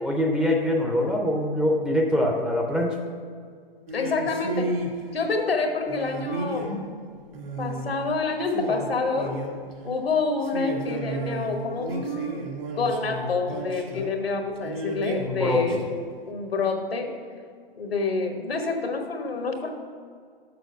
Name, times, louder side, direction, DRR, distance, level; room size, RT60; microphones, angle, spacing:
voice 1, 0.0-3.0 15.3-15.8, left 1 dB, 5° right, -1 dB, 0.4 m, -24 dB
voice 2, 3.9-4.7 5.1-6.7 7.6-9.4 9.8-15.7 16.3-17.1 17.8-19.7, left 4 dB, 90° left, 4 dB, 1.3 m, -27 dB
sound 1, 3.9-4.9 5.9-6.9 7.3-7.9 8.2-8.3 8.5-9.7 10.4-14.1 14.6-16.0, right 1 dB, 70° right, 1.8 m, -32 dB
7.0 x 5.9 x 5.8 m, 2.1 s
hypercardioid pair, 125°, 29 cm